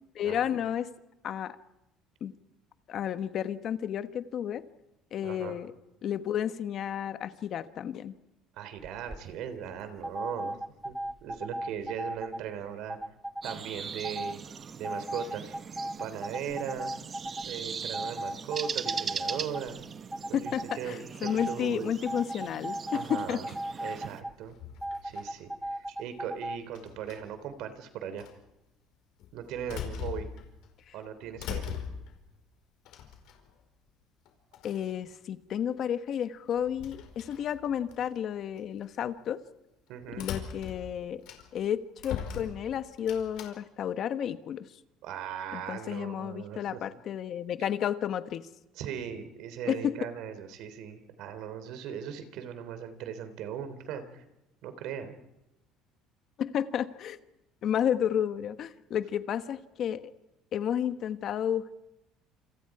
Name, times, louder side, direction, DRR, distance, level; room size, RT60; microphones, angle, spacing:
voice 1, 0.1-0.9 1.2-1.6 2.2-2.3 2.9-4.6 5.1-5.7 6.0-8.1 20.3-23.4 34.6-39.4 40.2-41.2 41.5-44.7 45.5-48.5 49.6-49.9 56.4-57.2 57.6-60.1 60.5-61.7, left 9 dB, 50° left, 10 dB, 1.2 m, -32 dB
voice 2, 5.2-5.6 8.6-10.6 10.8-10.9 11.2-13.0 13.4-14.4 14.8-15.6 16.0-16.9 17.4-19.8 20.3-21.9 22.9-23.5 23.8-24.6 25.0-28.2 29.3-30.3 30.9-31.7 39.9-40.3 45.0-46.6 48.8-54.2 54.6-55.1, right 8 dB, 70° right, 10 dB, 3.2 m, -38 dB
sound 1, 8.8-9.2 10.0-12.4 12.9-13.6 14.0-14.4 14.8-17.5 17.9-19.8 20.1-20.8 21.3-21.6 22.1-24.3 24.8-26.6, right 1 dB, 5° right, 0.7 m, -36 dB
sound 2, 13.4-24.2, right 6 dB, 30° right, 1.0 m, -40 dB
sound 3, 24.4-25.4 26.7-27.5 28.2-28.3 29.2-30.7 31.0-32.3 32.9-33.6 34.3-34.4 34.5-34.9 36.5-38.1 38.6-38.8 40.1-41.7 42.0-43.5, left 8 dB, 70° left, 4.8 m, -40 dB
28.0 x 27.0 x 4.9 m, 0.96 s
cardioid pair, 125°, 0 cm